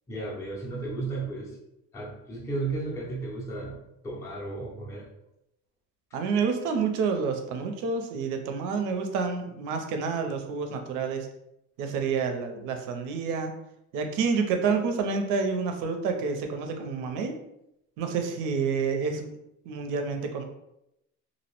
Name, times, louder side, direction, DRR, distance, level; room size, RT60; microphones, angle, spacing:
voice 1, 0.1-1.6 1.9-5.1, right 3 dB, 10° left, -3 dB, 0.4 m, -34 dB
voice 2, 6.1-11.3 11.8-13.5 13.9-17.4 18.0-19.3 19.6-20.4, right 5 dB, 90° right, 5 dB, 0.5 m, -28 dB
2.5 x 2.0 x 2.9 m, 0.83 s
cardioid pair, 170°, 30 cm